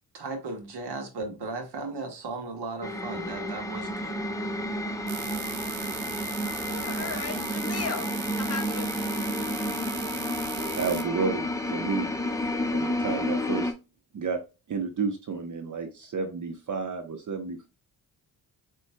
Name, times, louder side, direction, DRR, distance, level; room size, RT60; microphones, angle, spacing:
voice 1, 0.1-4.3, right 3 dB, 60° right, 1.5 m, -36 dB
sound 1, 2.8-13.7, left 1 dB, 5° left, 0.8 m, -31 dB
sound 2, 5.1-11.0, right 10 dB, 80° right, 0.8 m, -38 dB
voice 2, 6.7-8.9, left 5 dB, 30° left, 1.3 m, -36 dB
voice 3, 10.5-12.2 12.7-13.7 14.1-14.4 14.7-17.7, right 5 dB, 45° right, 0.8 m, -31 dB
7.1 x 3.1 x 2.2 m
cardioid pair, 70°, 44 cm